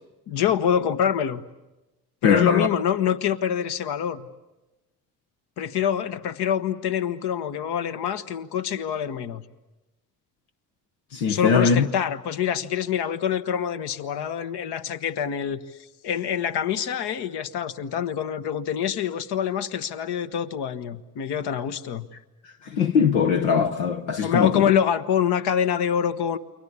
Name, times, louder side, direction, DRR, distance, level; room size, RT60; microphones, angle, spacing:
voice 1, 0.3-1.4 2.2-4.3 5.6-9.4 11.3-15.6 16.0-22.1 24.2-26.4, left 8 dB, 65° left, 1.3 m, -25 dB
voice 2, 2.2-2.7 11.1-11.9 22.6-24.7, left 6 dB, 90° left, 1.0 m, -21 dB
29.5 x 23.0 x 8.5 m
hypercardioid pair, 55°, 42 cm